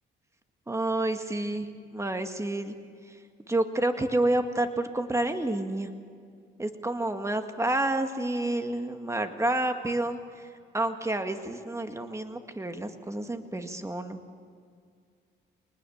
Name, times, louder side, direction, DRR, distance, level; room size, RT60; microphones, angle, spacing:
voice 1, 0.7-2.8 3.5-5.9 6.6-10.5 10.7-14.2, right 2 dB, 15° right, 7 dB, 2.0 m, -29 dB
23.5 x 20.0 x 7.2 m, 2.2 s
cardioid pair, 90°, 20 cm